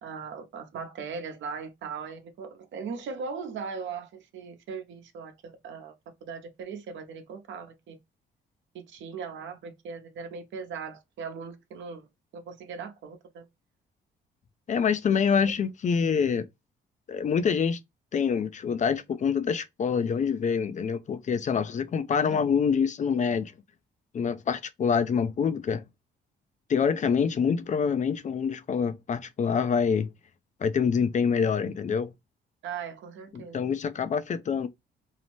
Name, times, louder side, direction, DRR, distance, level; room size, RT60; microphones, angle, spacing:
voice 1, 0.0-5.9 6.2-8.0 8.7-12.1 12.3-13.4 22.2-22.4 32.6-33.6, right 5 dB, 75° right, 0.8 m, -39 dB
voice 2, 14.7-16.5 17.1-17.8 18.1-23.5 24.1-25.8 26.7-30.1 30.6-32.1 33.3-34.7, left 6 dB, 40° left, 0.4 m, -26 dB
2.7 x 2.0 x 3.1 m
cardioid pair, 90°, 20 cm